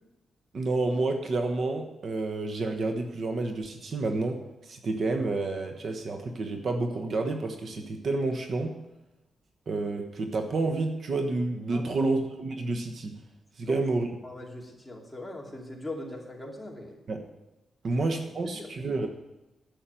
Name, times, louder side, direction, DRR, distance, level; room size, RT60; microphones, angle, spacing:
voice 1, 0.5-8.7 9.7-13.2 13.6-14.1 17.1-17.2 17.8-19.1, right 3 dB, 50° right, 4 dB, 1.2 m, -29 dB
voice 2, 11.7-12.1 13.6-13.9 14.2-17.0 18.4-18.7, left 1 dB, 10° left, -1 dB, 2.6 m, -40 dB
11.5 x 7.7 x 9.0 m, 1.0 s
wide cardioid pair, 145°, 0 cm